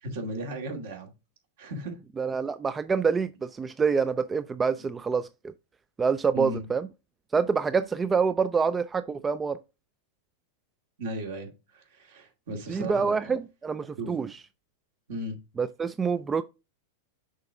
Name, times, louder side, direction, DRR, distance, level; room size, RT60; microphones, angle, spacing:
voice 1, 0.0-1.1 1.6-2.0 6.3-6.7 11.0-13.4 14.0-14.1 15.1-15.4, right 1 dB, 65° right, 2.4 m, -36 dB
voice 2, 2.2-5.3 6.0-6.9 7.3-9.6 12.7-14.4 15.6-16.4, right 5 dB, 20° right, 0.4 m, -26 dB
6.4 x 4.9 x 3.6 m
hypercardioid pair, 100°, 0 cm